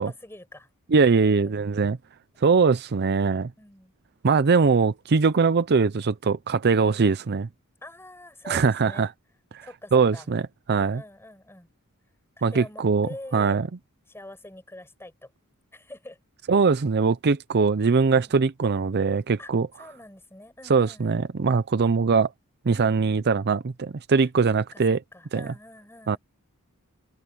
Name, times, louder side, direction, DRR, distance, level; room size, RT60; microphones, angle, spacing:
voice 1, 0.0-1.6 3.6-3.9 6.7-7.0 7.8-9.1 9.6-10.3 10.7-11.7 12.4-13.6 14.1-15.3 15.7-16.2 18.2-18.4 19.4-21.2 22.6-23.1 24.2-24.8 25.1-26.2, left 1 dB, 10° left, 8.0 m, -45 dB
voice 2, 0.9-2.0 2.4-3.5 4.2-7.5 8.5-9.1 9.5-9.6 9.9-10.4 10.7-11.0 12.4-13.7 16.5-19.7 20.7-22.3 22.7-25.0 25.3-25.5 26.1-26.2, right 5 dB, 50° right, 0.5 m, -21 dB
head